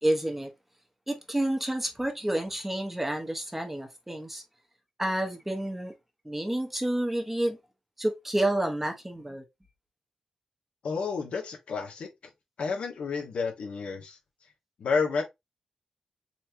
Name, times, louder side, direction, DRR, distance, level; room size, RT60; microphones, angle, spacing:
voice 1, 0.0-0.5 1.1-4.4 5.0-5.9 6.2-7.6 8.0-9.4, right 1 dB, 10° right, 1.1 m, -29 dB
voice 2, 10.8-12.1 12.6-14.2 14.8-15.2, left 5 dB, 75° left, 1.4 m, -30 dB
4.3 x 3.2 x 2.7 m
cardioid pair, 80°, 2 cm